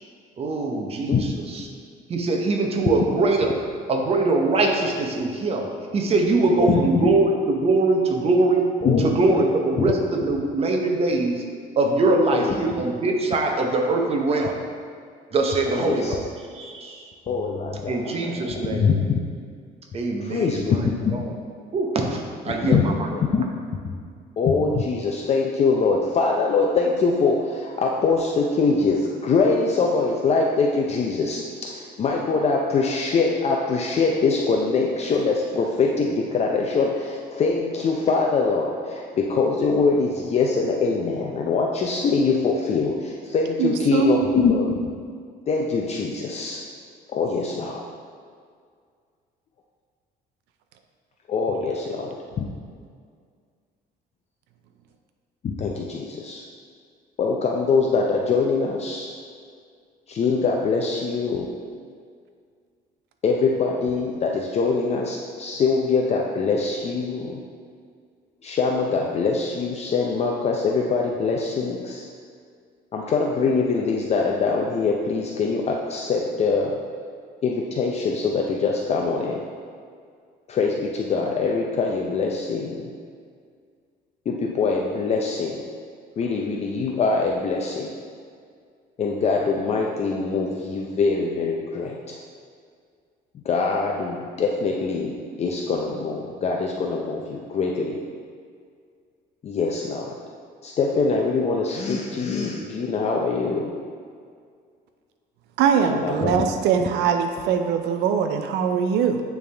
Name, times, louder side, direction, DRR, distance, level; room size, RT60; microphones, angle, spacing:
voice 1, 0.4-1.6 2.1-3.6 3.9-8.7 9.0-11.4 11.8-14.6 15.3-16.2 16.5-17.0 17.9-19.0 19.9-20.8 21.1-21.3 21.7-23.1, right 2 dB, 35° right, 2 dB, 0.8 m, -22 dB
voice 2, 6.6-7.1 8.8-9.0 9.8-9.9 12.3-12.5 15.7-16.1 17.3-19.1 20.2-21.2 22.6-23.5 24.4-44.9 45.5-46.6 47.1-47.8 51.3-52.5 55.4-56.4 57.2-59.1 60.1-61.5 63.2-67.4 68.4-72.1 72.9-76.8 77.4-79.5 80.5-82.9 84.3-85.6 86.2-87.9 89.0-92.2 93.3-98.0 99.4-100.1 100.6-103.7 105.9-106.4, left 4 dB, 40° left, -1 dB, 0.5 m, -23 dB
voice 3, 43.6-44.2 105.6-109.2, right 7 dB, 80° right, 6 dB, 0.4 m, -22 dB
9.0 x 3.5 x 3.3 m, 2.1 s
cardioid pair, 110°, 17 cm